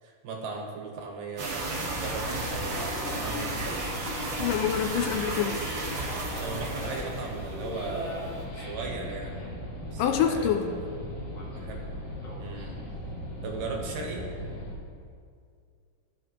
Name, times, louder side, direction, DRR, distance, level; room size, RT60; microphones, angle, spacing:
voice 1, 0.0-4.1 6.3-9.4 9.9-10.5 11.5-11.8 12.4-12.8 13.4-14.3, right 4 dB, 80° right, 0 dB, 2.8 m, -37 dB
sound 1, 1.4-8.5, right 2 dB, 60° right, 1.3 m, -34 dB
sound 2, 1.7-14.7, left 1 dB, 45° left, 1.6 m, -38 dB
voice 2, 4.4-5.6 10.0-10.6, left 9 dB, 80° left, 5 dB, 2.1 m, -26 dB
14.5 x 6.4 x 3.0 m, 2.2 s
omnidirectional pair, 3.9 m